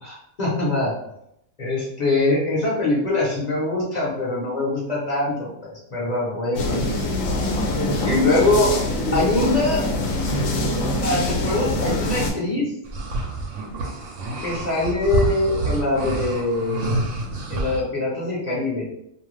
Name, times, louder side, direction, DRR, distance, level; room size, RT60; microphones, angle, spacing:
voice 1, 0.0-0.9 1.6-5.5 5.9-7.0 8.0-8.7 9.1-9.8 11.0-12.7 14.4-16.9 17.5-18.9, left 2 dB, 40° left, -6 dB, 0.8 m, -23 dB
sound 1, 6.5-12.3, left 1 dB, 75° left, 0.9 m, -24 dB
sound 2, 12.9-17.8, right 3 dB, 70° right, 0.9 m, -27 dB
2.6 x 2.3 x 3.2 m, 0.79 s
omnidirectional pair, 1.4 m